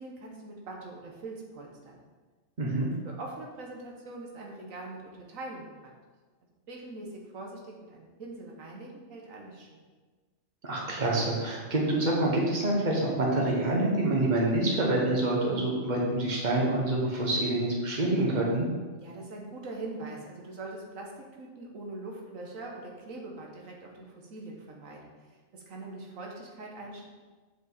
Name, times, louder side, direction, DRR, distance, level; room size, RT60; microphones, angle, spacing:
voice 1, 0.0-2.0 2.8-5.7 6.7-9.8 19.0-27.1, right 2 dB, 85° right, 0 dB, 1.5 m, -43 dB
voice 2, 2.6-2.9 10.6-18.7, right 2 dB, 35° right, -2 dB, 1.5 m, -27 dB
7.4 x 5.4 x 4.1 m, 1.4 s
omnidirectional pair, 1.3 m